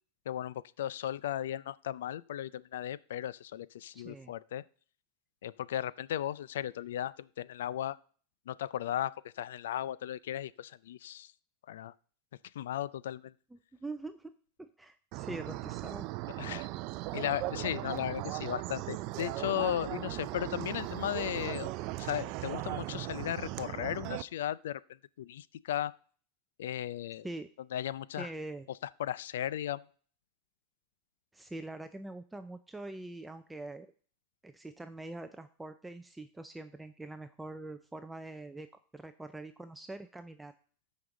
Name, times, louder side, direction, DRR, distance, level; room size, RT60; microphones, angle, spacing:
voice 1, 0.3-4.6 5.4-8.0 8.5-11.3 11.7-11.9 12.5-13.3 16.4-16.7 17.1-24.8 25.2-25.9 26.6-27.3 27.7-28.3 29.0-29.8, left 11 dB, 85° left, 19 dB, 0.4 m, -36 dB
voice 2, 3.9-4.3 13.8-16.1 27.2-27.5 28.2-28.7 31.3-33.9 34.4-38.7 38.9-40.5, right 2 dB, 10° right, 9 dB, 0.5 m, -44 dB
sound 1, 15.1-24.2, right 18 dB, 55° right, 0.5 m, -38 dB
13.5 x 5.3 x 3.8 m, 0.43 s
supercardioid pair, 115°, 0 cm